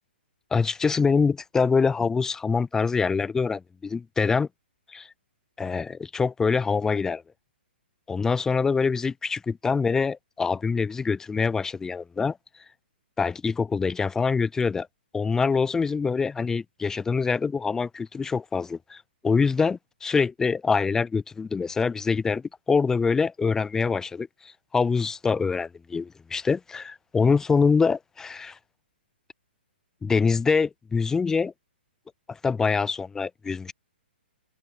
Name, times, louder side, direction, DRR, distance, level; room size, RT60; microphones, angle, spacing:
voice 1, 0.5-4.5 4.9-5.1 5.6-7.2 8.1-12.4 13.2-14.9 15.1-28.6 30.0-31.5 32.3-33.7, left 5 dB, 10° left, 0.6 m, -25 dB
hypercardioid pair, 130°, 6 cm